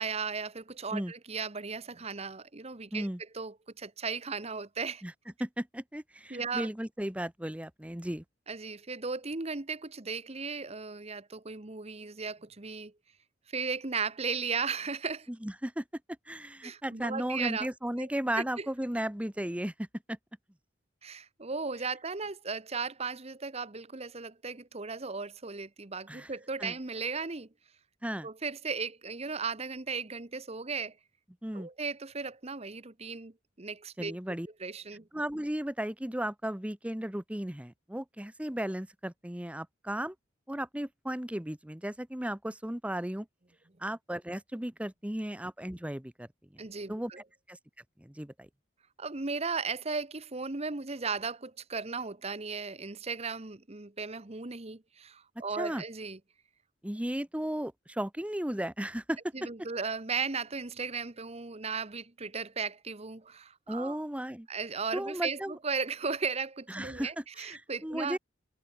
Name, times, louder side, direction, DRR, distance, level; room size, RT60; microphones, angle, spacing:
voice 1, 0.0-3.1 3.3-5.0 6.3-6.7 8.5-12.9 13.5-15.3 16.6-17.7 18.0-18.1 18.4-18.7 21.0-27.5 28.2-31.0 31.5-34.2 34.6-35.1 46.6-47.2 49.0-56.2 59.3-64.0 64.5-68.2, right 4 dB, 35° right, 1.2 m, -36 dB
voice 2, 5.4-8.2 15.4-15.8 16.3-20.2 26.1-26.3 26.6-26.7 28.0-28.3 31.4-31.7 34.0-34.5 35.1-40.1 40.5-43.3 43.8-46.3 46.5-46.6 46.9-47.1 47.5-47.6 48.0-48.5 55.6-55.8 56.8-59.2 63.7-64.5 64.9-65.5 66.7-68.2, right 1 dB, 5° right, 1.0 m, -35 dB
head